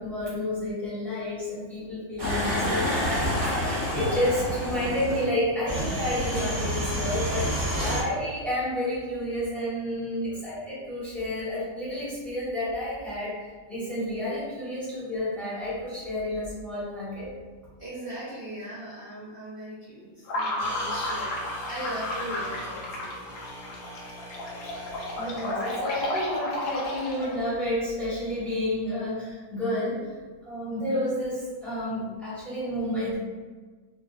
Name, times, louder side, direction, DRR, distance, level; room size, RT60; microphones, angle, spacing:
voice 1, 0.0-17.3 25.2-30.1 30.4-33.2, left 1 dB, ahead, -10 dB, 1.0 m, -30 dB
sound 1, 2.2-5.3 5.7-8.0, equal, 25° right, 0.5 m, -28 dB
voice 2, 17.8-23.3, equal, 50° right, -10 dB, 0.8 m, -39 dB
sound 2, 20.3-27.5, left 1 dB, 75° left, 1.0 m, -32 dB
sound 3, 20.6-27.2, equal, 50° left, 1.0 m, -43 dB
2.6 x 2.3 x 2.3 m, 1.4 s
omnidirectional pair, 1.4 m